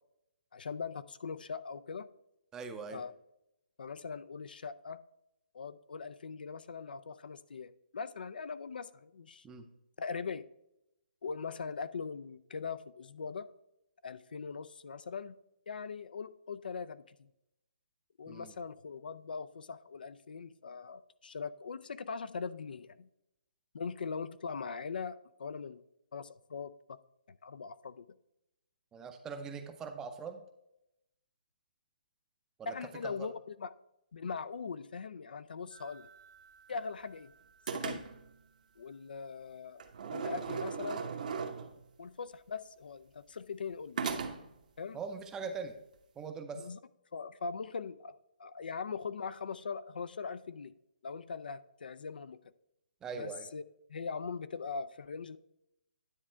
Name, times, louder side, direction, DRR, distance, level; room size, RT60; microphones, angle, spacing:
voice 1, 0.5-2.1 2.9-3.1 3.8-5.0 5.5-9.5 10.0-10.4 11.2-13.5 14.0-15.3 15.7-17.3 18.2-23.1 23.7-25.8 26.1-27.0 27.4-28.1 32.7-33.7 34.1-36.1 36.7-37.3 37.7-38.0 38.8-41.0 42.0-44.0 44.8-45.0 46.5-46.8 47.1-50.7 51.0-52.4 53.1-53.6 53.9-55.4, left 5 dB, 75° left, 14 dB, 0.4 m, -41 dB
voice 2, 2.5-3.0 9.4-9.7 18.3-18.5 28.9-30.4 32.6-32.8 33.0-33.3 44.9-45.7 46.2-46.7 53.0-53.5, right 5 dB, 10° right, 7 dB, 0.5 m, -42 dB
sound 1, 35.7-37.2 37.7-38.3 39.8-41.9 44.0-44.6, right 5 dB, 55° right, 0.9 m, -39 dB
9.9 x 3.6 x 4.4 m, 0.84 s
hypercardioid pair, 155°, 5 cm